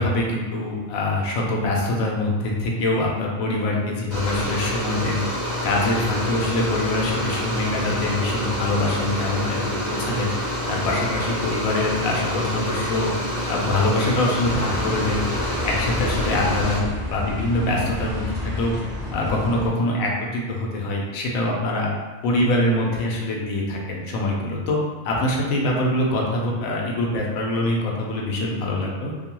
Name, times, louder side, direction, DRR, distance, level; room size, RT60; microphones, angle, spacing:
voice 1, 0.0-5.2 5.6-10.3 10.7-13.1 13.5-15.3 15.6-18.8 19.1-21.9 22.2-24.8 25.0-29.1, left 1 dB, 85° left, -2 dB, 1.0 m, -24 dB
sound 1, 4.1-16.8, equal, 40° left, 0.5 m, -27 dB
sound 2, 14.4-19.7, left 2 dB, 10° right, 0.6 m, -30 dB
2.6 x 2.2 x 2.9 m, 1.3 s
omnidirectional pair, 1.4 m